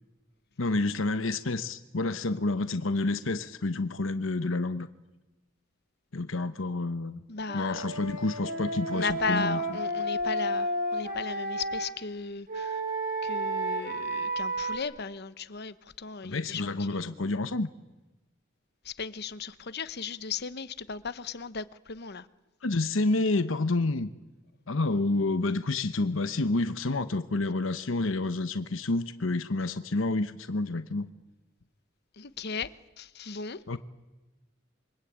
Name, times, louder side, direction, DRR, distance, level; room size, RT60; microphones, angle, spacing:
voice 1, 0.6-4.9 6.1-7.2 7.5-9.6 16.2-17.7 22.6-24.1 24.7-31.1 33.7-33.8, left 2 dB, 75° left, 1.0 m, -29 dB
voice 2, 7.3-7.9 8.9-12.8 13.2-17.0 18.8-22.3 32.2-33.6, left 5 dB, 55° left, 1.1 m, -36 dB
Wind instrument woodwind instrument, 7.5-11.9 12.5-14.8, right 1 dB, 45° right, 6.4 m, -32 dB
27.5 x 24.5 x 8.8 m
head